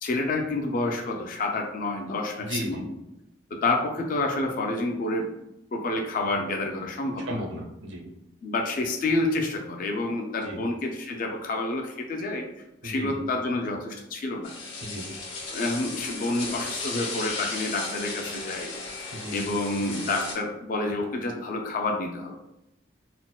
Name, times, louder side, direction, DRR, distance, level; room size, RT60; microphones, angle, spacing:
voice 1, 0.0-2.9 3.5-5.3 5.7-7.4 8.4-12.5 12.8-14.5 15.5-18.7 19.3-22.4, left 2 dB, 45° left, 2 dB, 0.3 m, -28 dB
voice 2, 2.4-2.8 7.2-8.0 10.4-10.6 12.8-13.2 14.8-15.0 19.1-19.4, right 1 dB, 75° right, 0 dB, 0.7 m, -34 dB
sound 1, 14.4-20.3, left 3 dB, 75° left, 0.8 m, -35 dB
4.1 x 2.1 x 2.3 m, 0.90 s
head